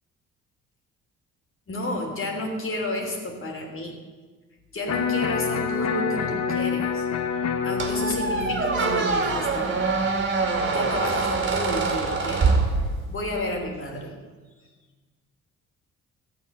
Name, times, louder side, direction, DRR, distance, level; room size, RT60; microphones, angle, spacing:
voice 1, 1.7-4.0 4.7-7.1 7.4-9.7 10.7-12.5 13.1-14.1, left 1 dB, 45° left, 2 dB, 3.2 m, -31 dB
Electric guitar, 4.9-10.9, left 6 dB, 60° left, 1.1 m, -28 dB
Squeak, 7.8-13.3, right 4 dB, 40° right, 2.3 m, -24 dB
13.5 x 8.4 x 6.6 m, 1.3 s
cardioid pair, 90°, 30 cm